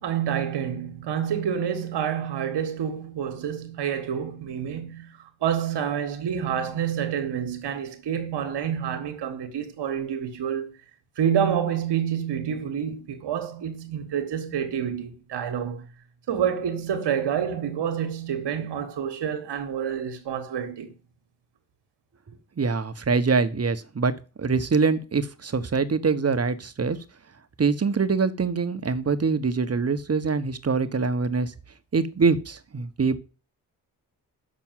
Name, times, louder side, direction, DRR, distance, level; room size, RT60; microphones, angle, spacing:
voice 1, 0.0-10.7 11.2-15.9 16.3-20.9, right 8 dB, 65° right, 1.7 m, -28 dB
voice 2, 22.6-24.1 24.4-27.0 27.6-31.5 31.9-33.2, right 4 dB, 35° right, 1.3 m, -24 dB
6.7 x 6.2 x 7.5 m
hypercardioid pair, 45°, 43 cm